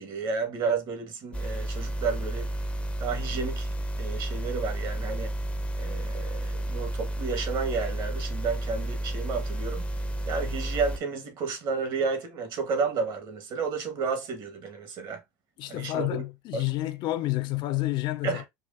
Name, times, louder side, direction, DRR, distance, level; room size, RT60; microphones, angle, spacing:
voice 1, 0.0-2.5 3.0-3.7 4.0-5.3 5.7-9.9 10.3-15.2 15.7-16.2 16.5-16.6 18.2-18.5, right 5 dB, 50° right, 1.5 m, -31 dB
sound 1, 1.3-11.0, right 1 dB, 10° left, 0.6 m, -31 dB
voice 2, 15.6-18.4, left 17 dB, 55° left, 0.5 m, -29 dB
4.7 x 2.5 x 2.6 m
hypercardioid pair, 90°, 10 cm